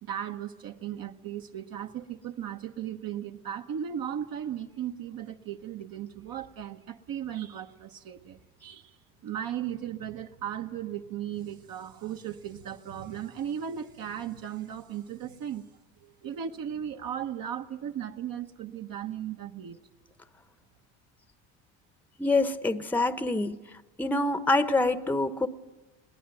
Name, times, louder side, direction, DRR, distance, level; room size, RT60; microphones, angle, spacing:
voice 1, 0.0-9.0 9.2-15.6 16.0-19.8, right 9 dB, 50° right, 4 dB, 1.2 m, -36 dB
voice 2, 22.2-23.5 24.0-25.5, left 2 dB, 5° left, 11 dB, 0.9 m, -25 dB
21.5 x 18.5 x 9.1 m, 1.2 s
cardioid pair, 105°, 43 cm